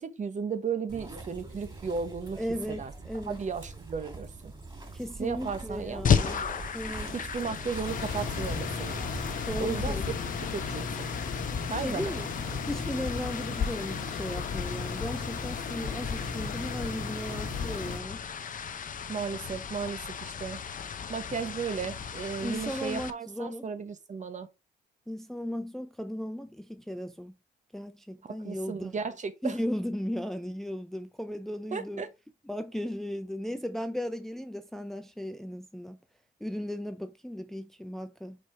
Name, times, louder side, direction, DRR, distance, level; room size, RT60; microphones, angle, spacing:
voice 1, 0.0-2.9 3.3-4.5 5.2-6.0 7.1-9.1 9.6-10.0 10.5-11.1 11.7-12.1 19.1-20.6 21.1-24.5 28.4-29.6 31.7-32.1, right 5 dB, 35° right, 1.0 m, -35 dB
sound 1, 0.9-9.9, right 3 dB, 20° right, 3.1 m, -43 dB
voice 2, 2.4-3.4 4.9-6.4 6.7-7.1 9.5-10.3 11.7-12.3 12.7-18.2 22.4-23.7 25.1-27.3 27.7-29.0 29.4-32.0 32.5-36.0 36.4-38.4, equal, ahead, 0.5 m, -36 dB
sound 2, 6.0-23.1, left 7 dB, 40° left, 0.7 m, -35 dB
sound 3, 7.9-18.0, left 5 dB, 70° left, 1.7 m, -35 dB
5.1 x 4.5 x 4.9 m
cardioid pair, 90°, 20 cm